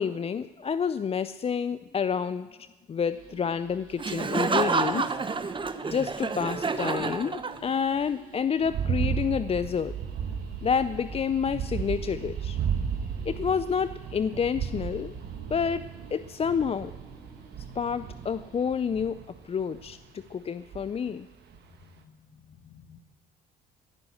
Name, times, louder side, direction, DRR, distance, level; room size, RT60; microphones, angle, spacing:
voice 1, 0.0-5.1 5.9-9.9 10.6-12.6 13.3-15.1 15.5-15.8 16.1-16.9 17.8-19.2 19.4-21.3, left 6 dB, 30° left, 14 dB, 0.5 m, -29 dB
sound 1, 3.0-18.9, right 3 dB, 80° right, 5.8 m, -49 dB
Laughter, 4.0-7.9, right 4 dB, 25° right, 1.0 m, -29 dB
sound 2, 8.6-20.0 20.7-21.1 21.5-21.6, right 7 dB, 60° right, 1.6 m, -34 dB
voice 2, 21.7-23.0, left 6 dB, 50° left, 8 dB, 1.6 m, -53 dB
18.0 x 9.6 x 6.4 m, 1.2 s
hypercardioid pair, 60°, 20 cm